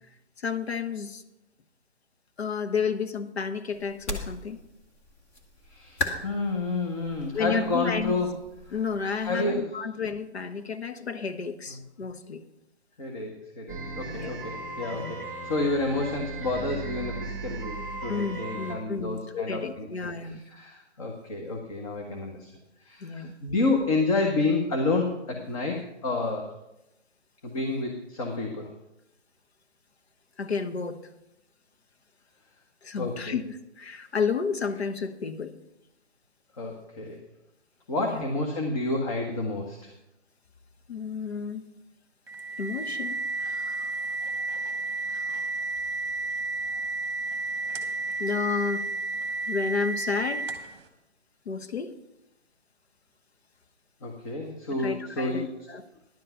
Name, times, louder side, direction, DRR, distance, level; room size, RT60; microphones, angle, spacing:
voice 1, 0.4-1.2 2.4-4.6 7.3-8.1 8.7-12.4 14.1-14.3 14.9-15.1 18.1-20.4 23.0-23.3 30.4-31.0 32.8-35.5 38.0-38.2 40.9-41.6 42.6-44.0 45.1-45.5 48.2-48.9 49.5-50.5 51.5-51.9 54.8-55.8, left 5 dB, 65° left, 10 dB, 1.1 m, -31 dB
sound 1, 3.7-9.3, left 1 dB, 15° left, 0.7 m, -38 dB
voice 2, 5.7-8.3 8.7-8.8 9.2-9.7 13.0-22.5 22.8-26.5 27.4-28.7 33.0-33.4 36.6-37.2 37.9-39.9 54.0-55.5, left 2 dB, 30° left, 2 dB, 1.2 m, -30 dB
sound 2, 13.7-18.8, right 3 dB, 5° right, 1.3 m, -37 dB
sound 3, 42.3-50.8, right 3 dB, 25° right, 1.2 m, -32 dB
11.0 x 7.7 x 5.6 m, 0.89 s
figure-of-eight pair, 150°, 34 cm